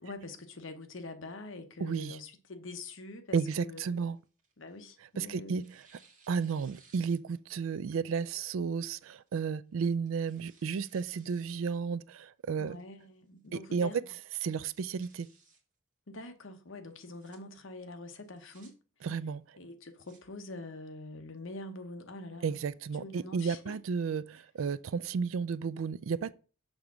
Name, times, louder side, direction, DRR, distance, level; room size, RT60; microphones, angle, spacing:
voice 1, 0.0-4.1 4.6-5.5 12.6-14.1 16.1-18.7 19.6-22.6 23.0-23.8, left 2 dB, 65° left, 0.9 m, -45 dB
voice 2, 1.8-2.2 3.3-4.2 5.2-5.8 6.3-12.8 13.5-13.9 14.4-15.3 19.0-19.6 22.4-26.3, right 5 dB, 75° right, 0.4 m, -33 dB
Tearing, 3.8-5.0 5.5-7.6 8.0-8.1 9.0-9.3 9.8-11.6 12.0-12.1 12.7-13.1 13.4-13.5 13.8-13.9 14.3-15.6 16.9-17.4 18.2-18.7 19.7-20.2, right 4 dB, 40° right, 1.7 m, -63 dB
6.6 x 3.5 x 6.1 m
head